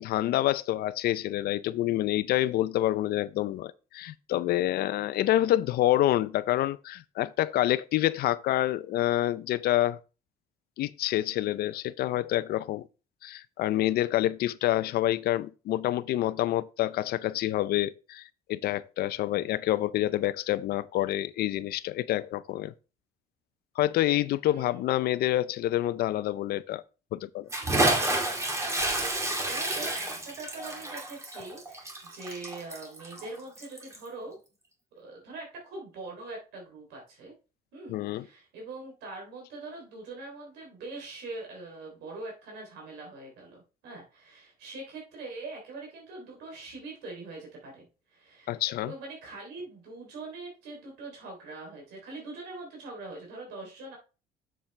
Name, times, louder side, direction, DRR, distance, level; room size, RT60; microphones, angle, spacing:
voice 1, 0.0-10.0 10.8-12.9 13.2-18.2 18.5-22.7 23.8-26.8 27.1-27.5 37.9-38.3 48.5-48.9, left 14 dB, 65° left, 0.5 m, -27 dB
Bathtub (filling or washing) / Splash splatter, 27.5-34.1, right 2 dB, 15° right, 2.1 m, -30 dB
voice 2, 29.4-34.3 34.9-37.3 37.7-47.8 48.1-54.0, right 3 dB, 85° right, 3.3 m, -43 dB
7.3 x 7.0 x 3.3 m
cardioid pair, 110°, 17 cm